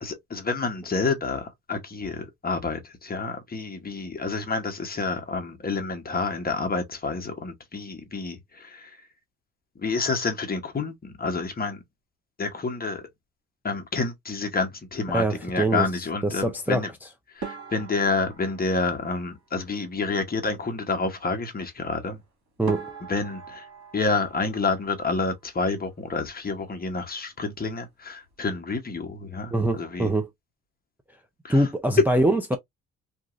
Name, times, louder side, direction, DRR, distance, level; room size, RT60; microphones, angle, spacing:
voice 1, 0.0-8.9 9.8-11.8 12.4-13.0 13.6-16.9 17.4-22.2 23.1-23.6 23.9-30.1 31.4-31.7, left 4 dB, 30° left, 1.0 m, -29 dB
voice 2, 15.1-15.9 16.2-16.8 22.6-22.9 29.5-30.3 31.5-32.6, right 1 dB, 5° right, 0.5 m, -23 dB
sound 1, 17.4-19.9 22.1-22.2 22.7-25.4 25.7-26.5 26.8-27.0 27.3-27.4 28.0-28.3, right 5 dB, 65° right, 1.7 m, -41 dB
2.9 x 2.6 x 2.5 m
cardioid pair, 90°, 30 cm